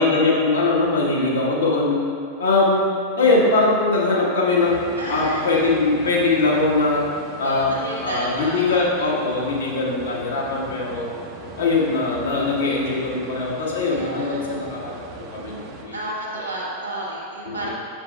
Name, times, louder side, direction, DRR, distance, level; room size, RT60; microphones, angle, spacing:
voice 1, 0.0-2.0 2.4-2.8 3.2-4.8 5.1-7.0 7.4-7.7 8.0-11.1 11.6-16.0 17.4-17.7, left 3 dB, 65° left, -5 dB, 1.3 m, -21 dB
sound 1, 4.6-15.8, right 2 dB, 40° right, 0.8 m, -39 dB
voice 2, 5.0-5.7 7.4-8.8 13.8-14.4 15.9-17.7, right 2 dB, 85° right, -7 dB, 1.4 m, -31 dB
7.3 x 6.9 x 2.3 m, 2.5 s
figure-of-eight pair, 90°, 0 cm